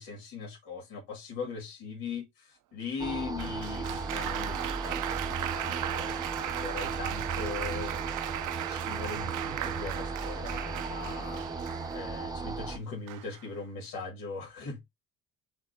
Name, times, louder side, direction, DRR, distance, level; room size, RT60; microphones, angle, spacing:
voice 1, 0.0-8.0 8.7-11.4 11.9-14.8, left 4 dB, 75° left, 2.2 m, -40 dB
sound 1, 3.0-12.8, right 3 dB, 10° right, 0.5 m, -36 dB
Applause, 3.4-12.2 13.1-13.5, right 13 dB, 60° right, 0.6 m, -37 dB
5.8 x 2.6 x 3.3 m
cardioid pair, 110°, 35 cm